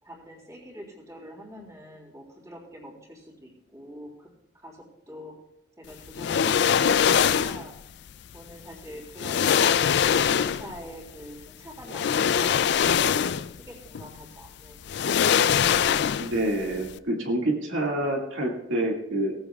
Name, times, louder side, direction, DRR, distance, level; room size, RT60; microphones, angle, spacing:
voice 1, 0.0-4.3 4.5-5.3 5.8-7.7 8.3-9.6 10.1-15.8, equal, 15° right, -2 dB, 3.3 m, -45 dB
sound 1, 6.2-7.7 8.7-8.8 9.2-10.8 11.9-13.6 13.9-14.1 14.9-16.5 16.8-16.9, left 8 dB, 60° left, 0.4 m, -22 dB
voice 2, 16.2-19.3, right 1 dB, 80° right, 0 dB, 2.0 m, -27 dB
18.0 x 15.0 x 2.3 m, 0.80 s
head